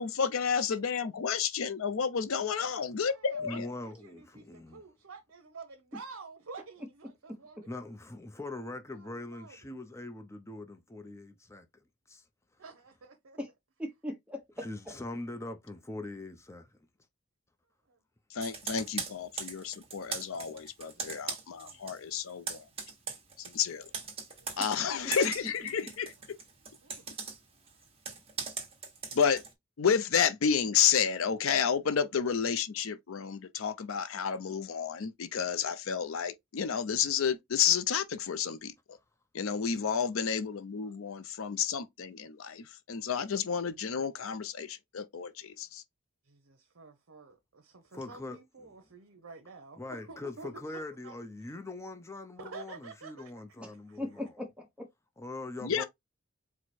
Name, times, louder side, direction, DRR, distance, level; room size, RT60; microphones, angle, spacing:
voice 1, 0.0-3.7 18.3-22.7 23.4-23.9 24.6-26.1 29.1-29.4 29.8-39.0 39.3-45.8 55.6-55.8, left 7 dB, 70° left, 0.5 m, -31 dB
voice 2, 2.5-3.6 3.8-7.6 8.9-9.7 12.6-13.4 17.9-18.0 18.3-18.4 20.3-20.6 21.0-21.3 21.5-22.0 24.4-24.7 26.8-27.1 32.0-32.1 40.8-40.9 46.3-51.1 52.4-53.3, right 4 dB, 65° right, 0.8 m, -50 dB
voice 3, 3.4-4.8 7.7-11.7 12.1-12.2 14.6-16.8 47.9-48.4 48.6-48.7 49.8-54.0 55.2-55.8, left 2 dB, 15° left, 0.6 m, -42 dB
voice 4, 7.3-7.6 13.4-13.5 13.8-15.0 25.0-25.1 53.6-54.9, left 1 dB, 5° right, 1.0 m, -40 dB
Computer keyboard, 18.4-22.0 22.3-29.5, right 5 dB, 25° right, 1.1 m, -40 dB
4.7 x 2.1 x 4.2 m
head